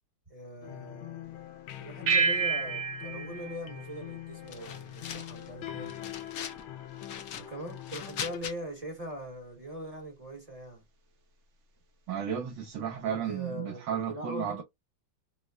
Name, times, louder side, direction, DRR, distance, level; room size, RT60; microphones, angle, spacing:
voice 1, 0.3-1.4 1.8-5.9 7.4-10.8 13.1-14.6, equal, 25° right, 0.9 m, -41 dB
sound 1, 0.6-8.4, left 13 dB, 85° left, 1.4 m, -43 dB
sound 2, 2.1-4.8, right 4 dB, 85° right, 0.6 m, -30 dB
sound 3, 4.5-5.5 5.8-6.6 7.0-8.5, left 8 dB, 65° left, 0.9 m, -41 dB
voice 2, 12.1-14.6, right 8 dB, 70° right, 1.5 m, -33 dB
5.0 x 2.1 x 2.4 m
omnidirectional pair, 2.2 m